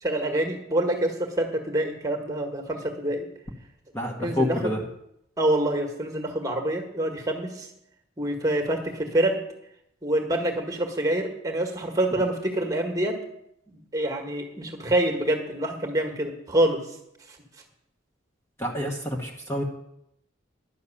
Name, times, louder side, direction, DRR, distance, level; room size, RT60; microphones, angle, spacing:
voice 1, 0.0-3.3 4.2-4.7 5.4-7.7 8.2-9.4 10.0-13.1 13.9-16.8, right 1 dB, 15° right, 4 dB, 1.6 m, -26 dB
voice 2, 3.9-4.8 18.6-19.6, left 1 dB, 10° left, 0 dB, 1.2 m, -28 dB
11.0 x 6.5 x 8.4 m, 0.77 s
head